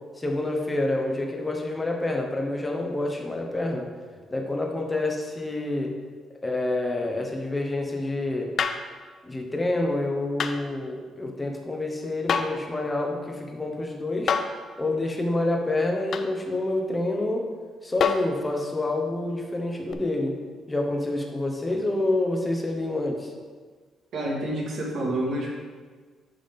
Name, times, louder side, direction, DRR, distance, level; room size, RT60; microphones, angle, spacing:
voice 1, 0.2-3.9 4.3-5.9 6.4-8.5 9.2-14.3 14.8-17.5 17.8-20.4 20.7-23.3, left 2 dB, 20° left, 2 dB, 1.1 m, -28 dB
sound 1, 8.6-8.9 10.4-10.6 12.3-12.6 14.3-14.6 16.1-16.3 18.0-18.4 19.9-20.0, left 6 dB, 55° left, 0.4 m, -26 dB
voice 2, 24.1-25.5, right 1 dB, 65° right, -3 dB, 2.0 m, -28 dB
10.5 x 3.8 x 3.7 m, 1.5 s
cardioid pair, 90°, 0 cm